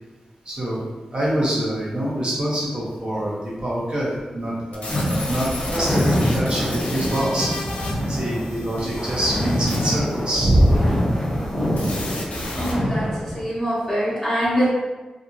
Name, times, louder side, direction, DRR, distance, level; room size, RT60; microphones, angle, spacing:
voice 1, 0.4-0.8 1.1-7.5 8.1-10.8, right 1 dB, 40° right, -7 dB, 1.0 m, -24 dB
sound 1, 4.7-12.7, left 2 dB, 85° left, 0.5 m, -34 dB
sound 2, 4.9-13.4, equal, 10° left, 0.9 m, -25 dB
voice 2, 12.5-14.7, equal, 10° right, -14 dB, 1.4 m, -24 dB
2.8 x 2.6 x 2.4 m, 1.2 s
wide cardioid pair, 105°, 2 cm